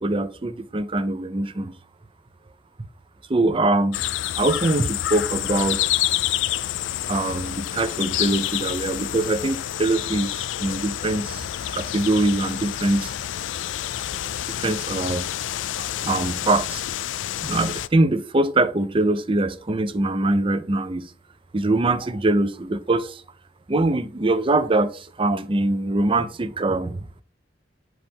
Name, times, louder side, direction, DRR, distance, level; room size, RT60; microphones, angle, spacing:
voice 1, 0.0-1.7 3.3-4.0 4.4-5.8 7.1-13.1 14.5-15.2 15.8-16.8 17.4-21.1 21.5-23.2 23.7-27.1, right 2 dB, 30° right, 0.6 m, -23 dB
sound 1, 3.9-17.9, left 12 dB, 75° left, 0.4 m, -28 dB
7.7 x 4.7 x 3.5 m
head